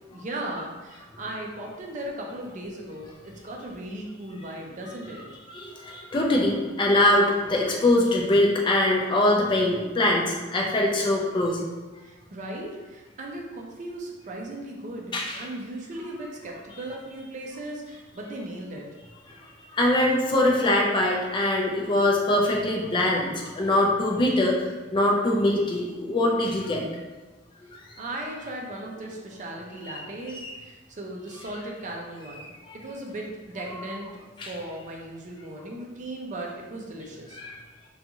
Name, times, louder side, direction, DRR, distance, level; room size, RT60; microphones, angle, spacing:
voice 1, 0.1-5.2 12.0-18.9 28.0-32.5 32.7-34.1 34.5-37.4, right 1 dB, 40° right, 0 dB, 0.4 m, -37 dB
voice 2, 5.5-11.6 15.1-15.4 19.7-24.6 24.9-26.8 30.3-30.5 32.7-32.8 34.4-34.5 37.3-37.6, left 1 dB, 25° left, -1 dB, 0.4 m, -23 dB
2.5 x 2.3 x 2.8 m, 1.2 s
head